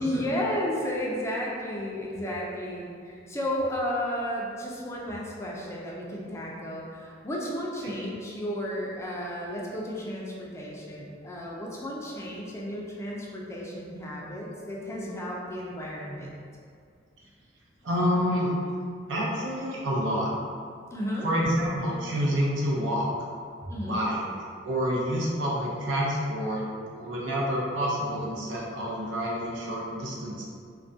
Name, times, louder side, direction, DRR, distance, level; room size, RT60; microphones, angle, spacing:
voice 1, 0.0-16.4 20.9-21.3 23.6-24.1, equal, 15° left, -4 dB, 0.3 m, -33 dB
voice 2, 17.8-18.5 19.1-20.3 21.2-23.1 23.8-24.2 24.6-26.7 26.9-30.4, equal, 85° right, -4 dB, 0.5 m, -28 dB
2.3 x 2.1 x 2.5 m, 2.2 s
head